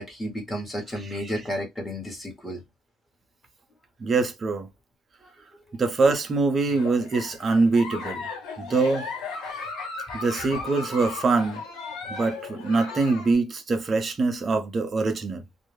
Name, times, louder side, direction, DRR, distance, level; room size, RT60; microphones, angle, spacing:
voice 1, 0.0-2.6 5.2-5.3, equal, 10° left, 1.0 m, -32 dB
voice 2, 4.0-4.7 5.8-8.3 8.6-9.1 10.1-11.6 12.1-15.4, right 3 dB, 30° right, 0.5 m, -24 dB
Giggle, 6.6-13.3, left 4 dB, 75° left, 1.0 m, -36 dB
2.2 x 2.0 x 3.1 m
cardioid pair, 130°, 0 cm